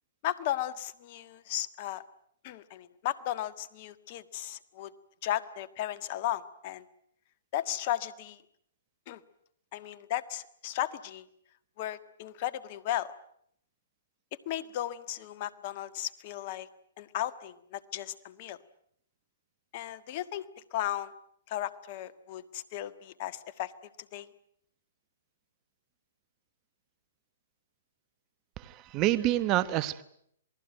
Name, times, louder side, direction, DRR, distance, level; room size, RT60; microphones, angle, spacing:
voice 1, 0.2-2.0 2.4-4.9 5.2-6.9 7.5-8.4 9.1-9.2 9.7-11.3 11.8-13.1 14.5-16.7 17.0-18.6 19.7-21.1 21.5-23.7 24.1-24.3, left 12 dB, 45° left, 14 dB, 1.6 m, -35 dB
voice 2, 28.6-30.0, right 15 dB, 30° right, 16 dB, 1.3 m, -27 dB
28.0 x 19.5 x 9.1 m, 0.70 s
hypercardioid pair, 135°, 0 cm